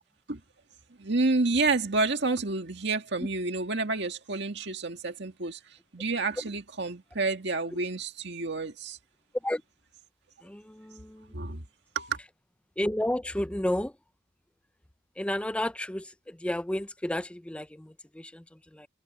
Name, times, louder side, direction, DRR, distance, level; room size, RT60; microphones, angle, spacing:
voice 1, 1.0-5.6 5.9-9.0 11.3-11.6 12.0-12.1, right 3 dB, 60° right, 2.1 m, -29 dB
voice 2, 10.4-11.3 12.8-13.9 15.2-18.9, left 1 dB, 5° left, 0.5 m, -32 dB
head